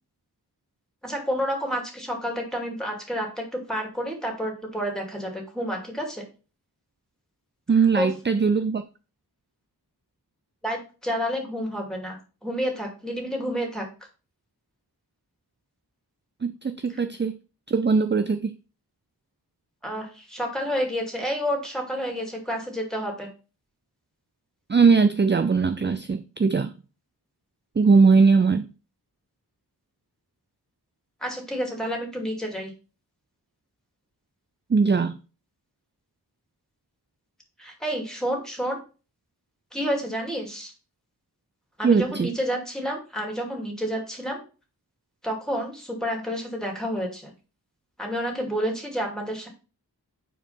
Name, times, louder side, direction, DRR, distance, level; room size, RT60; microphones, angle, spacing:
voice 1, 1.0-6.2 8.0-8.1 10.6-13.9 19.8-23.3 31.2-32.7 37.6-38.8 39.7-40.7 41.8-44.4 45.2-47.3 48.0-49.5, equal, ahead, 2.4 m, -29 dB
voice 2, 7.7-8.8 16.4-17.4 17.7-18.5 24.7-26.7 27.8-28.7 34.7-35.2 41.8-42.3, right 5 dB, 30° right, 0.4 m, -20 dB
5.0 x 4.5 x 5.5 m
wide cardioid pair, 45°, 40 cm